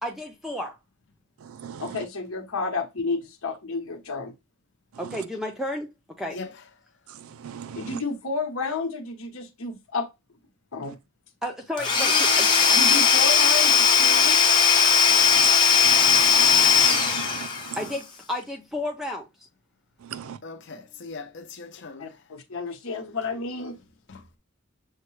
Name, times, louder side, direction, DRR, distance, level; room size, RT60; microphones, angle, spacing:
voice 1, 0.0-0.8 5.0-5.9 6.2-6.4 11.4-12.8 17.8-19.3, left 1 dB, ahead, 0.5 m, -32 dB
voice 2, 1.8-4.3 7.7-10.1 10.7-11.0 12.7-14.4 22.0-23.8, left 3 dB, 80° left, 1.1 m, -31 dB
voice 3, 7.4-8.0 15.3-15.5 15.8-17.5 20.1-20.2, right 8 dB, 80° right, 0.4 m, -37 dB
Domestic sounds home sounds / Tools, 11.8-17.9, left 6 dB, 20° left, 0.9 m, -18 dB
voice 4, 20.4-22.2 24.1-24.4, left 3 dB, 55° left, 0.7 m, -40 dB
6.4 x 2.2 x 3.1 m
head